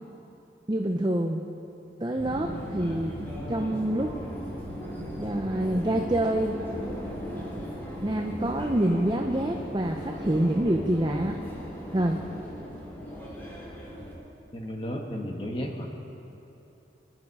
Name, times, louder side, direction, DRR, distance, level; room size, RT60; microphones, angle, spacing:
voice 1, 0.7-1.4 2.0-3.1 3.5-4.1 5.2-6.6 8.0-11.4 11.9-12.2, right 1 dB, 25° right, 2 dB, 0.6 m, -26 dB
Subway metro underground, 2.2-14.1, equal, 10° left, 2.9 m, -37 dB
voice 2, 14.5-15.9, equal, 30° left, 1 dB, 1.5 m, -33 dB
24.0 x 11.0 x 4.8 m, 2.9 s
head